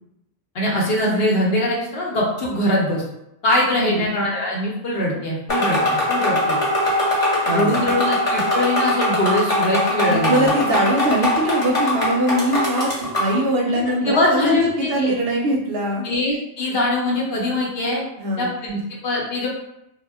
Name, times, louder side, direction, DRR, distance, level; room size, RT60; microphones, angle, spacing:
voice 1, 0.5-3.0 3.4-6.6 7.5-10.5 14.0-15.1 16.0-18.0 18.4-19.5, left 1 dB, 60° left, -3 dB, 0.8 m, -22 dB
voice 2, 3.7-4.1 7.5-7.8 10.1-16.0 18.2-18.5, right 1 dB, 65° right, -1 dB, 0.7 m, -22 dB
sound 1, 5.5-13.4, left 1 dB, 35° left, 0.9 m, -21 dB
2.2 x 2.1 x 3.3 m, 0.85 s
omnidirectional pair, 1.2 m